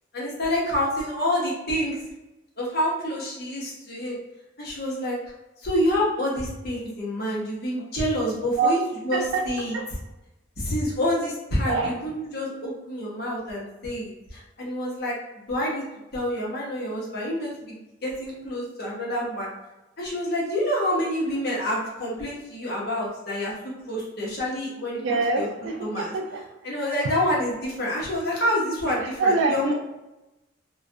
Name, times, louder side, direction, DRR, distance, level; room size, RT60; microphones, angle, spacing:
voice 1, 0.1-2.0 2.6-4.2 4.6-5.2 5.6-8.8 9.0-9.7 10.6-15.1 15.5-15.8 16.1-19.5 20.0-23.5 23.8-25.5 25.8-26.1 26.6-29.7, equal, 55° left, -4 dB, 0.8 m, -27 dB
voice 2, 25.0-26.4 27.0-27.1 28.9-29.7, right 3 dB, 70° right, 3 dB, 0.3 m, -25 dB
2.4 x 2.1 x 2.5 m, 0.99 s
head